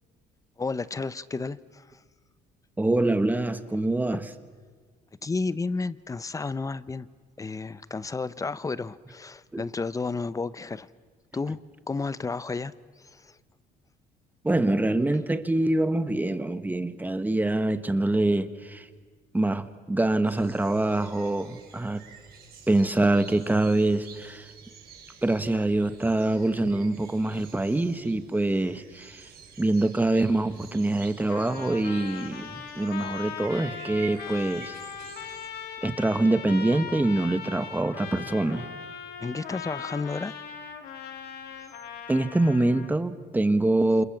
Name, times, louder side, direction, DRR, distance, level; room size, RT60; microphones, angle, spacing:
voice 1, 0.6-2.0 5.2-7.1 7.4-10.9 11.3-11.6 11.9-12.7 13.0-13.4 39.2-40.3, left 4 dB, 20° left, 16 dB, 0.8 m, -32 dB
voice 2, 2.8-4.2 9.5-9.6 14.4-18.9 19.3-22.0 22.7-24.5 25.2-29.3 29.6-34.7 35.8-38.7 42.1-44.0, right 2 dB, 10° right, 11 dB, 1.4 m, -25 dB
sound 1, 20.2-35.5, right 7 dB, 65° right, 6.5 m, -50 dB
Trumpet, 31.3-42.9, left 7 dB, 70° left, 2.8 m, -39 dB
29.0 x 27.0 x 7.3 m, 1.5 s
cardioid pair, 110°, 17 cm